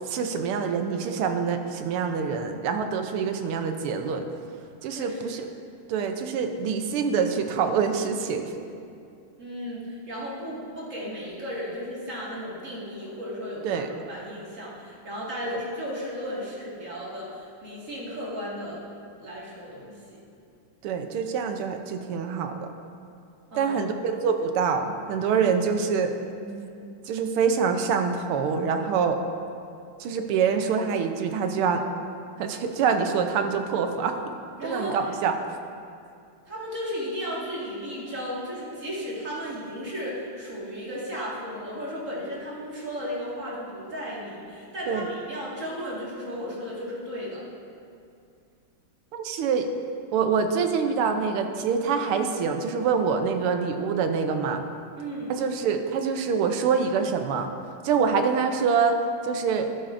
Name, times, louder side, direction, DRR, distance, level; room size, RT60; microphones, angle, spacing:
voice 1, 0.1-4.3 4.8-5.5 5.9-8.5 13.6-13.9 20.8-22.7 23.5-26.1 27.1-29.2 30.0-31.8 32.4-34.3 34.6-35.3 44.9-45.1 49.1-49.7 50.1-54.6 55.3-57.5 57.8-59.0 59.2-59.7, right 6 dB, 85° right, 6 dB, 1.6 m, -25 dB
voice 2, 4.9-5.4 9.4-18.9 19.2-20.2 23.5-23.8 26.3-26.9 34.6-35.1 36.4-47.4 55.0-55.4, equal, 35° right, -6 dB, 2.2 m, -35 dB
13.5 x 11.0 x 2.6 m, 2.5 s
omnidirectional pair, 2.4 m